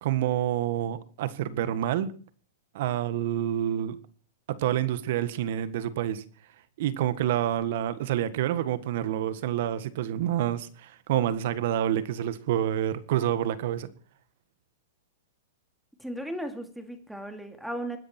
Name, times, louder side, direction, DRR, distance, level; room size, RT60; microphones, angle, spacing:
voice 1, 0.0-2.1 2.7-4.0 4.5-6.2 6.8-13.9, right 11 dB, 55° right, 1.7 m, -28 dB
voice 2, 16.0-18.0, right 1 dB, ahead, 2.5 m, -36 dB
25.5 x 10.0 x 4.5 m
hypercardioid pair, 145°, 0 cm